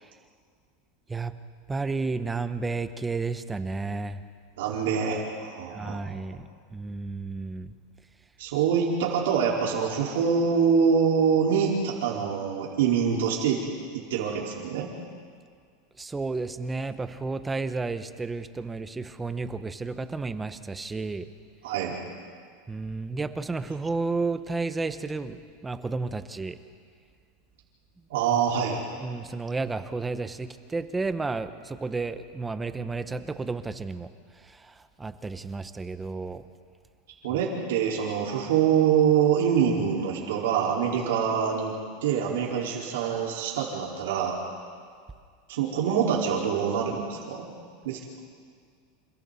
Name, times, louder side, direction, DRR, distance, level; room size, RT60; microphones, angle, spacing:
voice 1, 1.7-4.2 5.7-6.5 6.7-7.7 16.0-21.3 22.7-26.6 29.0-34.1 34.4-36.4, right 3 dB, 10° right, 10 dB, 0.9 m, -32 dB
voice 2, 4.6-6.2 8.4-13.6 13.9-14.9 21.6-22.0 28.1-28.8 37.2-41.7 42.0-44.4 45.5-47.5 47.8-48.0, right 7 dB, 85° right, -4 dB, 4.5 m, -25 dB
29.5 x 28.5 x 4.2 m, 2.1 s
supercardioid pair, 155°, 0 cm